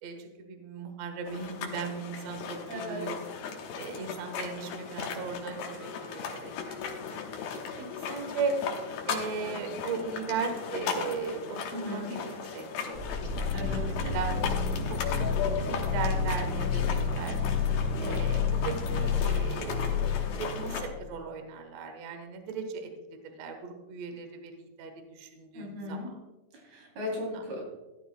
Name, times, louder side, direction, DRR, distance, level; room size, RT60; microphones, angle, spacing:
voice 1, 0.0-3.2 3.8-6.8 7.1-7.2 7.5-7.6 7.9-8.6 9.1-14.3 14.9-15.3 15.6-17.4 18.0-22.9 23.2-26.1 27.2-27.4, right 5 dB, 60° right, 5 dB, 1.9 m, -37 dB
sound 1, 1.3-20.9, left 6 dB, 90° left, 3.1 m, -37 dB
voice 2, 2.7-3.1 11.7-12.1 13.5-13.9 25.5-26.1 26.5-27.6, left 1 dB, 80° right, -2 dB, 5.1 m, -37 dB
sound 2, 12.9-20.8, left 5 dB, 35° left, 3.1 m, -30 dB
16.5 x 12.0 x 2.3 m, 1.1 s
omnidirectional pair, 4.3 m